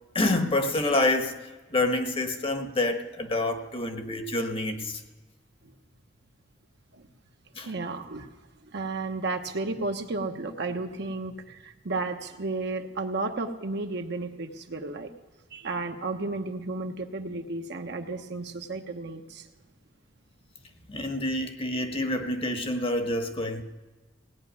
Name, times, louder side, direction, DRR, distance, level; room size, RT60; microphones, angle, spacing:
voice 1, 0.1-1.4 1.7-5.0 7.6-7.7 20.9-23.6, left 2 dB, 30° left, 6 dB, 1.1 m, -27 dB
voice 2, 7.6-8.3 8.6-15.1 15.5-19.5, right 3 dB, 65° right, 5 dB, 1.0 m, -33 dB
17.0 x 5.9 x 9.4 m, 1.3 s
head